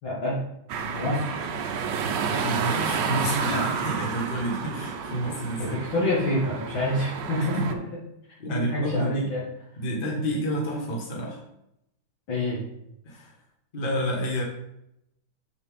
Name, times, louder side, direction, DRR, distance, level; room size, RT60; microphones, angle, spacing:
voice 1, 0.0-0.4 0.9-1.4 5.6-7.6 8.5-9.4 12.3-12.6, left 1 dB, 70° left, -8 dB, 2.8 m, -27 dB
sound 1, 0.7-7.7, right 6 dB, 65° right, 1.3 m, -30 dB
voice 2, 2.3-5.8 7.4-7.7 8.4-9.3 9.8-11.4 13.0-13.3 13.7-14.4, equal, 25° left, -2 dB, 1.5 m, -29 dB
7.4 x 7.3 x 3.6 m, 0.80 s
omnidirectional pair, 2.3 m